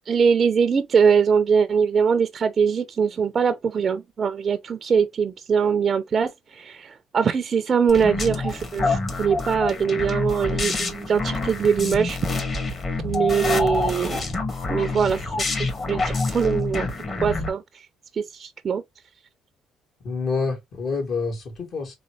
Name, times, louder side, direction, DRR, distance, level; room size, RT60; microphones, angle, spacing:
voice 1, 0.1-12.2 13.0-14.2 14.7-16.9 17.2-17.6 18.1-18.8, right 6 dB, 45° right, 0.5 m, -22 dB
sound 1, 7.9-17.5, left 3 dB, 40° left, 1.9 m, -27 dB
voice 2, 20.0-22.0, left 4 dB, 60° left, 2.2 m, -27 dB
3.9 x 3.3 x 3.2 m
supercardioid pair, 75°, 0 cm